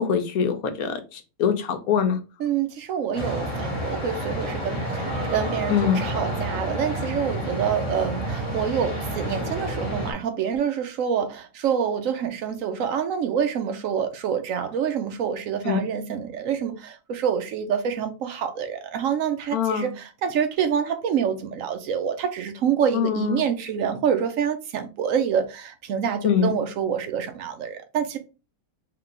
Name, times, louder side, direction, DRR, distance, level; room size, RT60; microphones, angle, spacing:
voice 1, 0.0-2.2 5.7-6.0 15.6-15.8 19.5-19.9 22.9-23.4 26.2-26.5, left 7 dB, 75° left, 1.2 m, -23 dB
voice 2, 2.4-28.2, right 8 dB, 70° right, 1.0 m, -27 dB
sound 1, 3.1-10.1, equal, 20° left, 1.4 m, -29 dB
3.3 x 2.9 x 3.7 m
omnidirectional pair, 1.5 m